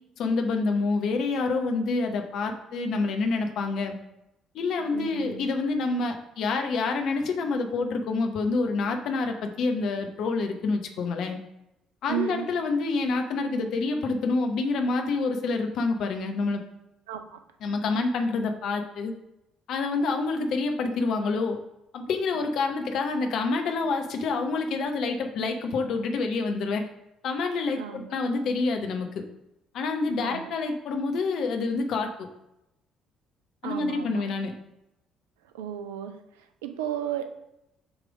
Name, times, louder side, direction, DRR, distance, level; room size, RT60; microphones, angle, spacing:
voice 1, 0.2-4.0 4.5-11.4 12.0-16.6 17.6-19.1 19.7-21.6 21.9-26.8 27.2-29.1 29.7-32.3 33.6-34.5, left 3 dB, 55° left, 4 dB, 0.9 m, -27 dB
voice 2, 4.9-5.5 12.1-12.4 17.1-17.4 27.8-28.4 30.2-30.5 33.6-34.2 35.5-36.1 36.6-37.2, right 11 dB, 70° right, 7 dB, 0.5 m, -34 dB
7.1 x 3.4 x 4.9 m, 0.89 s
figure-of-eight pair, 50°, 0 cm